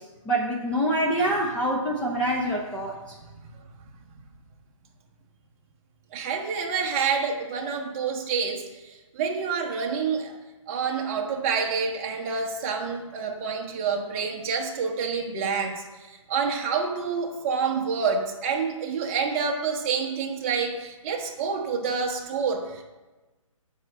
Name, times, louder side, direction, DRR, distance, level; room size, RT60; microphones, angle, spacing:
voice 1, 0.3-2.9, right 1 dB, 10° left, -3 dB, 0.6 m, -25 dB
voice 2, 6.1-10.3 10.7-22.8, right 5 dB, 25° right, 1 dB, 1.2 m, -28 dB
8.0 x 5.5 x 7.1 m, 1.2 s
hypercardioid pair, 155°, 17 cm